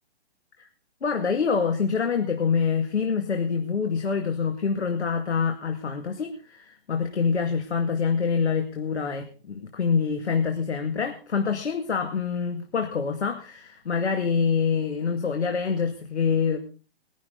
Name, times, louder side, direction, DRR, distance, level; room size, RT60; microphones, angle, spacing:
voice 1, 1.0-16.6, left 6 dB, 85° left, 4 dB, 2.3 m, -26 dB
21.0 x 11.5 x 4.0 m, 0.35 s
hypercardioid pair, 165°, 33 cm